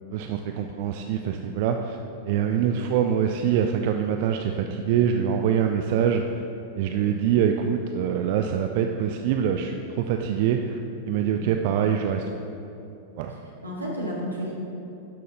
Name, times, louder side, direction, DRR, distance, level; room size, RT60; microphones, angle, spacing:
voice 1, 0.1-2.0 2.3-6.4 6.8-10.8 11.1-12.4 13.2-13.3, right 8 dB, 50° right, 5 dB, 0.4 m, -24 dB
voice 2, 13.3-14.5, equal, 80° right, -4 dB, 1.7 m, -33 dB
12.0 x 6.1 x 2.9 m, 2.9 s
figure-of-eight pair, 90°, 0 cm